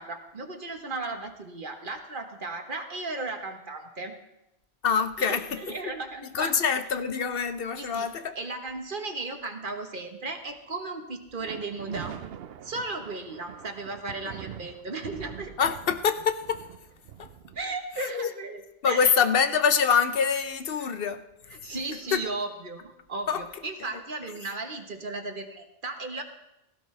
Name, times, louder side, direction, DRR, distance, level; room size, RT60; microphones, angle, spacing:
voice 1, 0.0-4.1 5.2-6.6 7.8-8.1 8.3-12.2 12.6-15.5 17.5-19.1 20.8-20.9 21.5-26.2, right 3 dB, 55° right, 6 dB, 1.4 m, -35 dB
voice 2, 4.8-5.7 6.3-8.3 15.6-16.6 17.2-17.3 18.0-18.3 18.8-21.2 22.1-22.2 23.3-23.4, left 6 dB, 65° left, 10 dB, 0.9 m, -25 dB
sound 1, 11.3-17.6, right 9 dB, 70° right, 0.8 m, -44 dB
16.5 x 16.0 x 3.3 m, 0.86 s
omnidirectional pair, 1.0 m